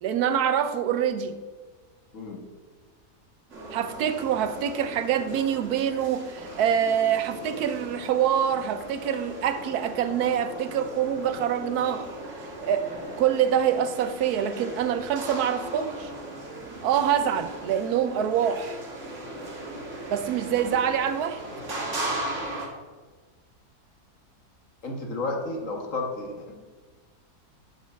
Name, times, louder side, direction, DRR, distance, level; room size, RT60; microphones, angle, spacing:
voice 1, 0.0-1.4 3.7-12.1 12.6-12.9 13.2-16.1 16.8-18.8 20.1-21.4, right 9 dB, 80° right, 11 dB, 1.1 m, -25 dB
sound 1, 3.5-22.7, right 1 dB, 50° right, 1.9 m, -38 dB
voice 2, 24.8-26.5, left 2 dB, 55° left, 1 dB, 1.7 m, -32 dB
7.3 x 5.5 x 6.3 m, 1.4 s
omnidirectional pair, 1.6 m